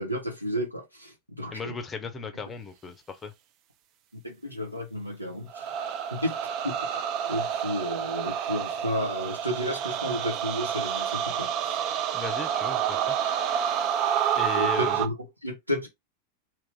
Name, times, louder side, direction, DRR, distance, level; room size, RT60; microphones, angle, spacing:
voice 1, 0.0-1.8 4.1-5.7 6.1-6.3 6.6-7.0 7.3-11.8 14.5-15.9, equal, 90° right, 1.0 m, -32 dB
voice 2, 1.5-3.3 12.1-13.6 14.3-15.1, left 4 dB, 20° left, 0.6 m, -37 dB
sound 1, 5.5-15.1, right 9 dB, 40° right, 0.4 m, -29 dB
3.0 x 2.6 x 3.4 m
figure-of-eight pair, 90°, 0 cm